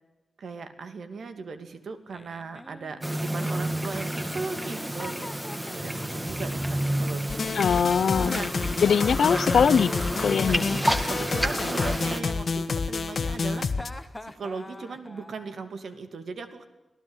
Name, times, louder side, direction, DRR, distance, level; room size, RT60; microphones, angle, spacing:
voice 1, 0.4-7.4 8.1-8.5 10.5-10.6 11.1-13.7 14.2-16.7, right 4 dB, 70° right, 8 dB, 2.6 m, -38 dB
Giggle, 2.1-3.9 4.6-6.2 7.3-8.2 8.9-10.1 10.3-10.9 12.1-12.9 13.5-15.6, left 1 dB, 10° left, 1.3 m, -44 dB
sound 1, 3.0-12.2, right 1 dB, 10° right, 2.0 m, -30 dB
sound 2, 7.3-13.9, left 4 dB, 50° left, 1.6 m, -29 dB
voice 2, 7.5-8.4 8.8-9.9 10.2-10.7, left 7 dB, 85° left, 15 dB, 0.7 m, -22 dB
26.5 x 18.0 x 8.1 m, 1.0 s
wide cardioid pair, 170°, 0 cm